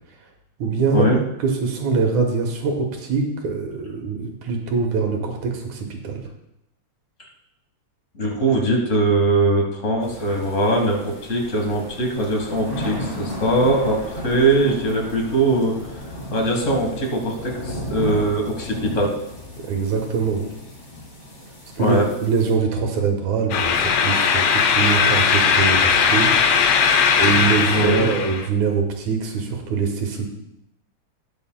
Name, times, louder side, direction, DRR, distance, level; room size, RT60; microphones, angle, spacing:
voice 1, 0.6-1.1 1.4-6.2 19.6-20.5 21.8-26.8 27.2-30.3, right 5 dB, 75° right, 2 dB, 2.6 m, -23 dB
voice 2, 8.1-15.8 16.3-19.1 21.8-22.0 27.7-28.1, right 2 dB, 40° left, 1 dB, 1.1 m, -21 dB
sound 1, 10.0-22.6, left 1 dB, 20° left, 2.0 m, -34 dB
sound 2, 23.5-28.5, left 6 dB, 80° left, 1.3 m, -18 dB
20.0 x 6.8 x 2.2 m, 0.84 s
omnidirectional pair, 3.4 m